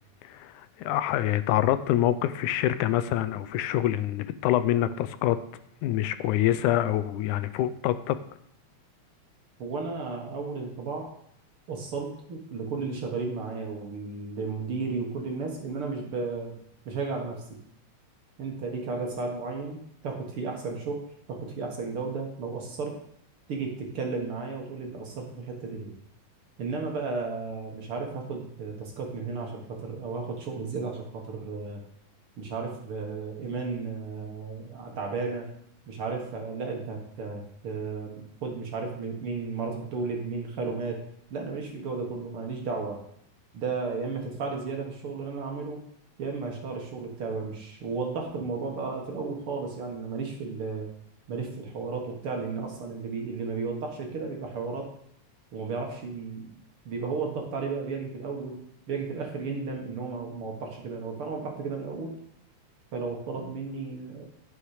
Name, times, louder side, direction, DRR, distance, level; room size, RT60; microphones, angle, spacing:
voice 1, 0.2-5.4 5.8-8.2, left 13 dB, 85° left, 13 dB, 2.0 m, -26 dB
voice 2, 9.6-11.1 11.7-16.6 16.9-17.4 18.4-21.0 21.3-23.0 23.5-25.9 26.6-31.8 32.4-35.5 35.9-41.0 41.3-43.0 43.5-45.8 46.2-50.9 51.3-54.9 55.5-56.5 56.9-58.6 58.9-62.1 62.9-64.3, right 4 dB, 55° right, 1 dB, 2.0 m, -34 dB
11.5 x 6.3 x 4.9 m, 0.70 s
omnidirectional pair, 3.5 m